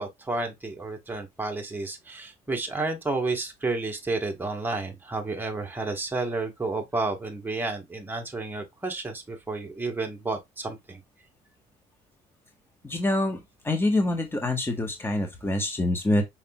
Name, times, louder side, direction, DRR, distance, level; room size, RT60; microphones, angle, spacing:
voice 1, 0.0-11.0, right 3 dB, 10° right, 1.3 m, -31 dB
voice 2, 12.8-16.2, left 1 dB, 15° left, 1.3 m, -26 dB
5.7 x 3.5 x 2.3 m
cardioid pair, 110°, 17 cm